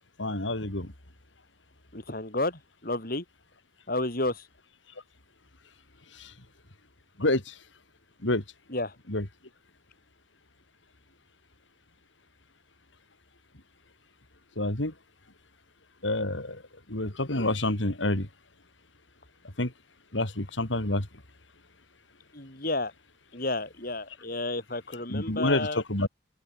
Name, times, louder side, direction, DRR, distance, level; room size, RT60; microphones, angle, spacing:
voice 1, 0.2-0.9 6.1-6.3 7.2-7.6 8.2-8.4 9.1-9.3 14.6-14.9 16.0-16.6 16.9-18.3 19.6-19.7 20.1-21.1 25.1-26.1, left 1 dB, 90° left, 4.2 m, -28 dB
voice 2, 1.9-3.2 3.9-4.4 8.7-8.9 22.3-22.9 23.3-25.8, left 2 dB, 50° left, 7.1 m, -31 dB
open air
head